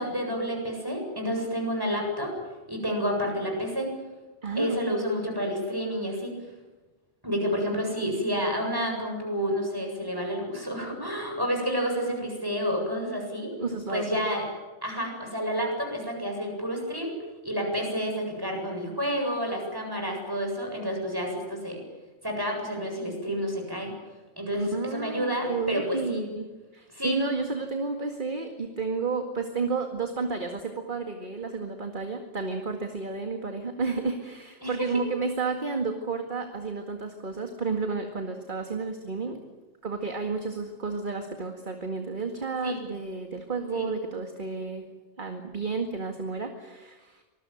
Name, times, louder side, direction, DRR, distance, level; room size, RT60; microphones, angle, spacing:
voice 1, 0.0-2.3 2.7-3.9 4.5-6.3 7.2-13.5 13.9-14.4 14.8-17.2 17.4-21.8 22.2-23.9 24.4-26.3 26.9-27.2 34.6-35.0 42.6-42.8 43.7-43.9, equal, 15° right, 2 dB, 7.9 m, -29 dB
voice 2, 4.4-4.8 13.6-14.0 24.5-26.5 26.7-39.4 39.8-44.8 45.2-47.2, right 4 dB, 40° right, 5 dB, 2.2 m, -31 dB
26.5 x 21.0 x 9.3 m, 1.2 s
omnidirectional pair, 1.3 m